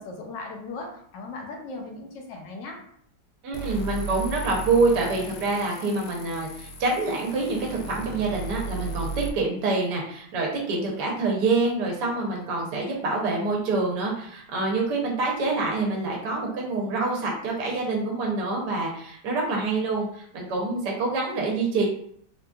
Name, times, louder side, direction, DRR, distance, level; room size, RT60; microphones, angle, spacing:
voice 1, 0.0-2.8, left 3 dB, 85° left, 2 dB, 1.3 m, -38 dB
voice 2, 3.4-21.9, right 3 dB, 75° right, -1 dB, 1.3 m, -26 dB
sound 1, 3.5-9.3, right 3 dB, 70° left, 0.9 m, -35 dB
3.7 x 2.6 x 2.3 m, 0.65 s
omnidirectional pair, 1.9 m